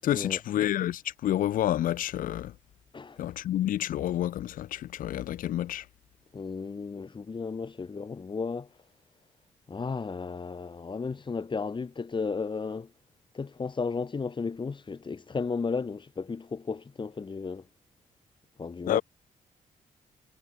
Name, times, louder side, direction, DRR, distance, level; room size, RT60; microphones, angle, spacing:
voice 1, 0.0-2.5 3.2-5.9 18.9-19.0, left 12 dB, 90° left, 7.4 m, -29 dB
voice 2, 2.9-3.2 6.3-8.7 9.7-12.9 13.3-17.7 18.6-19.0, left 4 dB, 35° left, 4.0 m, -34 dB
cardioid pair, 85°, 14 cm